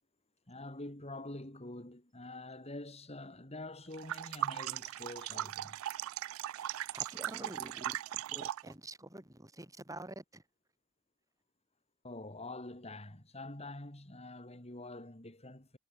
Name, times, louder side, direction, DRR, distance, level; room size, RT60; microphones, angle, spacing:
voice 1, 0.5-5.8 12.0-15.8, left 2 dB, 30° left, 4.0 m, -46 dB
sound 1, 3.9-8.7, right 12 dB, 70° right, 0.3 m, -38 dB
voice 2, 6.5-10.4, right 1 dB, 15° right, 4.7 m, -48 dB
head